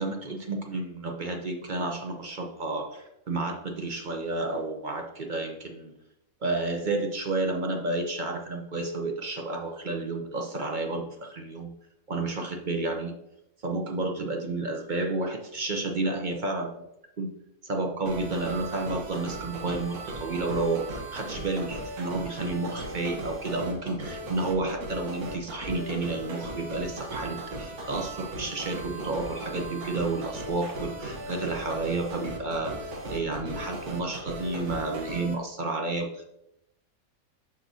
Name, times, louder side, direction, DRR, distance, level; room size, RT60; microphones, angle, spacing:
voice 1, 0.0-5.9 6.4-11.7 12.1-13.1 13.6-16.8 17.2-17.3 17.6-36.2, right 2 dB, 40° right, 3 dB, 0.7 m, -31 dB
sound 1, 18.1-35.3, right 1 dB, 85° right, 1.6 m, -37 dB
12.0 x 4.8 x 2.7 m, 0.83 s
omnidirectional pair, 1.5 m